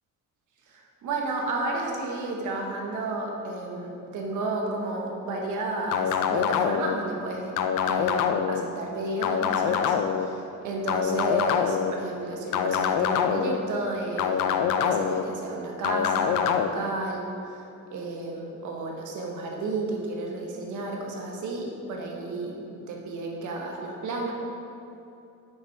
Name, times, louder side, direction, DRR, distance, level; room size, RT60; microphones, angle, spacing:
voice 1, 0.7-7.5 7.8-14.4 14.8-17.6 17.9-24.3, right 2 dB, 80° right, 0 dB, 1.2 m, -32 dB
sound 1, 5.9-7.0 7.6-8.6 9.2-10.3 10.9-11.9 12.5-13.6 14.2-15.2 15.8-16.7, left 8 dB, 85° left, 0.5 m, -25 dB
6.2 x 5.0 x 4.4 m, 2.7 s
cardioid pair, 90°, 30 cm